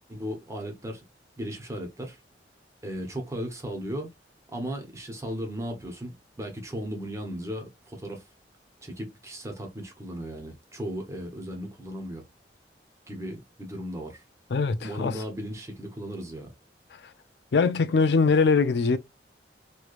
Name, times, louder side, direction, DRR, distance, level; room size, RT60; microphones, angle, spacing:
voice 1, 0.1-1.0 1.4-2.2 2.8-4.1 4.5-8.2 8.8-12.2 13.1-14.2 14.8-16.5, equal, 15° right, 1.0 m, -36 dB
voice 2, 14.5-15.2 17.5-19.0, left 4 dB, 70° left, 0.4 m, -22 dB
3.1 x 3.1 x 2.4 m
head